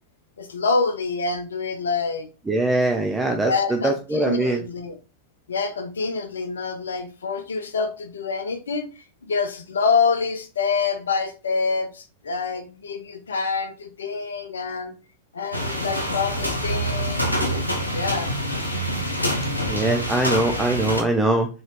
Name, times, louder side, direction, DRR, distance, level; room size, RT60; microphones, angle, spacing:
voice 1, 0.4-2.3 3.4-5.0 5.5-14.9 15.3-17.3 17.9-18.3, left 4 dB, 70° left, 0.6 m, -26 dB
voice 2, 2.5-4.6 19.7-21.5, right 2 dB, 10° right, 0.6 m, -22 dB
sound 1, 15.5-21.0, equal, 85° left, 1.1 m, -26 dB
4.0 x 3.8 x 3.0 m
figure-of-eight pair, 90°, 0 cm